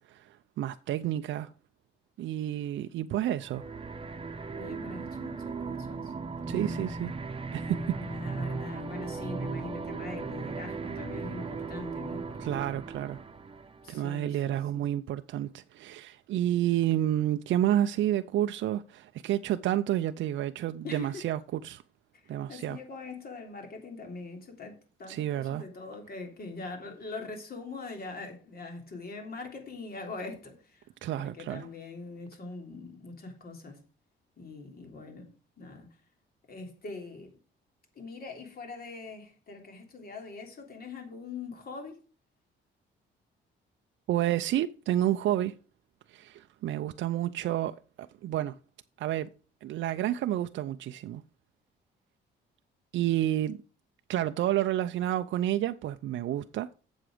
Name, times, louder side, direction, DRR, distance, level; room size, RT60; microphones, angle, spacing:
voice 1, 0.0-1.5 2.2-3.7 6.5-7.1 7.5-7.8 12.4-13.2 13.9-21.8 22.3-22.8 25.1-25.6 31.0-31.7 44.1-45.5 46.1-48.6 49.0-49.3 49.6-51.2 52.9-53.6 54.1-56.7, right 12 dB, 70° right, 0.5 m, -30 dB
sound 1, 3.4-13.9, right 4 dB, 25° right, 1.0 m, -37 dB
voice 2, 4.5-6.1 6.5-6.8 8.0-12.7 13.8-14.8 20.8-21.2 22.1-30.9 31.2-33.8 34.4-35.3 35.6-35.9 36.5-37.3 37.9-42.0, left 3 dB, 50° left, 3.2 m, -42 dB
7.7 x 7.3 x 5.0 m
cardioid pair, 90°, 20 cm